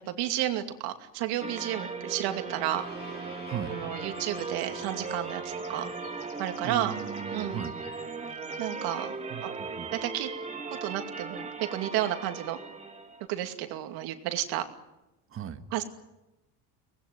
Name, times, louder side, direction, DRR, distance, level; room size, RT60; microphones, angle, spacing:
voice 1, 0.1-2.8 3.7-5.9 6.4-6.9 7.3-7.6 8.6-9.1 9.4-9.5 9.9-10.3 10.8-12.6 13.3-14.7 15.7-15.8, right 13 dB, 80° right, 6 dB, 2.6 m, -31 dB
sound 1, 1.4-13.3, right 4 dB, 15° right, 1.8 m, -38 dB
sound 2, 2.0-7.9, left 2 dB, 25° left, 4.5 m, -48 dB
voice 2, 3.5-3.8 6.6-7.7 9.3-9.9 15.3-15.7, right 9 dB, 35° right, 9 dB, 1.6 m, -37 dB
sound 3, 4.1-9.0, left 7 dB, 60° left, 4.7 m, -56 dB
24.5 x 19.5 x 9.6 m, 0.97 s
cardioid pair, 150°, 37 cm